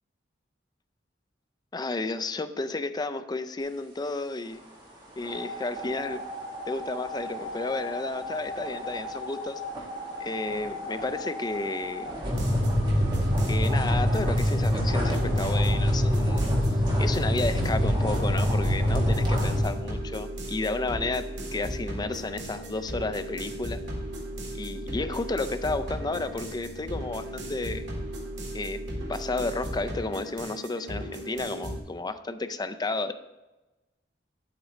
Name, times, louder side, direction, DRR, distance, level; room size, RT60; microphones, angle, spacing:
voice 1, 1.7-4.6 5.2-6.2 6.7-9.6 10.2-12.1 13.5-16.4 17.0-21.3 21.5-23.8 24.5-27.8 28.5-28.8 29.1-33.1, left 3 dB, 20° left, 10 dB, 0.4 m, -32 dB
sound 1, 5.2-19.6, equal, 25° right, 1.9 m, -27 dB
sound 2, 12.2-31.8, equal, 70° right, 1.9 m, -36 dB
9.7 x 8.0 x 3.1 m, 1.1 s
head